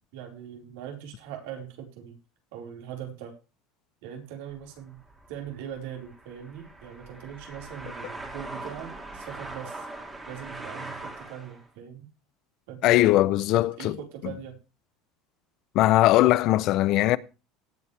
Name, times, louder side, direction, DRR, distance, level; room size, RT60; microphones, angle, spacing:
voice 1, 0.1-2.2 2.5-3.4 4.0-5.0 5.3-9.9 10.2-12.1 12.7-14.6, right 9 dB, 75° right, 4.4 m, -41 dB
sound 1, 4.5-11.7, right 2 dB, 10° right, 2.5 m, -41 dB
voice 2, 12.8-13.9 15.7-17.2, left 16 dB, 40° left, 0.5 m, -20 dB
18.0 x 8.6 x 3.3 m
cardioid pair, 175°, 0 cm